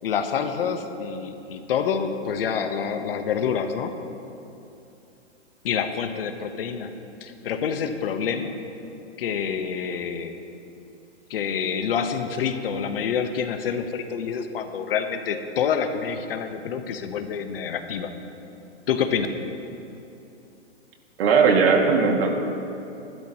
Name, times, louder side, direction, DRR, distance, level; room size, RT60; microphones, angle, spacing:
voice 1, 0.0-3.9 5.6-8.6 9.2-10.4 11.3-18.1 18.9-19.3, left 7 dB, 50° left, 7 dB, 1.2 m, -27 dB
voice 2, 21.2-22.3, right 5 dB, 55° right, 1 dB, 2.3 m, -18 dB
27.0 x 12.5 x 3.0 m, 2.8 s
hypercardioid pair, 145°, 36 cm